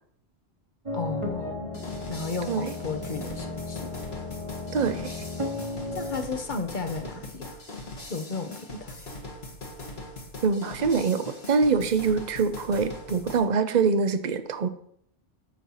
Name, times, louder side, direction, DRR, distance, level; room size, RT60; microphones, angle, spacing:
voice 1, 0.9-1.7 2.1-3.9 5.9-7.6 8.1-8.9, left 4 dB, 45° left, 7 dB, 1.1 m, -34 dB
sound 1, 0.9-6.2, left 2 dB, 30° right, 1.2 m, -35 dB
sound 2, 1.7-13.5, left 2 dB, 65° left, 2.1 m, -41 dB
voice 2, 4.7-5.1 10.4-14.7, right 5 dB, 45° right, 10 dB, 0.8 m, -24 dB
13.5 x 4.5 x 5.6 m, 0.66 s
omnidirectional pair, 1.1 m